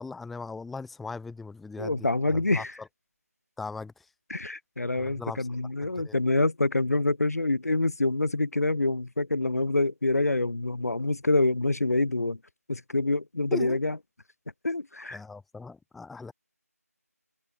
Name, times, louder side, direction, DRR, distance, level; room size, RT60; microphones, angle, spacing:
voice 1, 0.0-2.9 3.6-4.1 4.9-5.5 5.8-6.2 13.5-13.8 15.1-16.3, left 4 dB, ahead, 0.7 m, -39 dB
voice 2, 1.8-2.7 4.3-12.4 12.7-14.0 14.6-15.2, left 2 dB, 70° left, 0.8 m, -26 dB
figure-of-eight pair, 170°, 9 cm